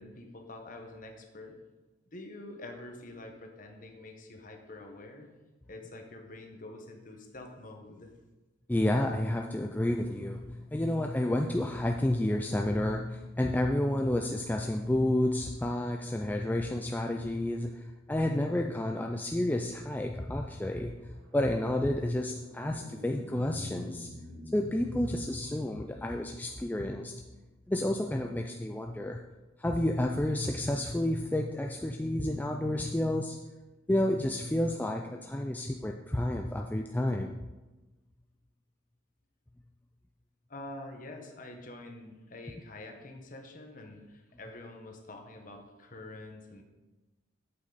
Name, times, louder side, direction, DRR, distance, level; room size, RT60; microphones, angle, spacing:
voice 1, 0.0-1.6 2.1-5.3 5.7-8.1 40.5-46.6, left 2 dB, 40° left, 3 dB, 1.2 m, -46 dB
voice 2, 8.7-24.1 24.5-27.1 27.7-29.2 29.6-33.4 33.9-37.4, left 1 dB, 10° left, 2 dB, 0.3 m, -30 dB
sound 1, 20.1-29.3, left 1 dB, 80° right, 3.3 m, -50 dB
8.4 x 8.2 x 4.0 m, 1.1 s
head